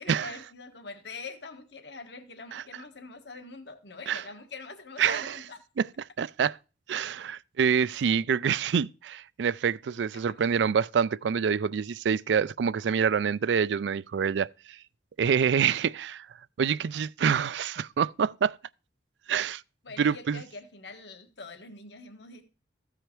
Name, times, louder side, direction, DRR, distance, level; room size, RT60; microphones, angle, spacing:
voice 1, 0.0-5.6 10.1-10.4 19.8-22.5, left 4 dB, 75° left, 1.4 m, -44 dB
voice 2, 5.0-5.3 5.8-5.9 6.2-6.6 6.9-14.5 15.2-16.3 16.6-18.6 19.3-19.6 20.0-20.4, right 7 dB, 80° right, 0.4 m, -26 dB
14.5 x 4.9 x 4.5 m
head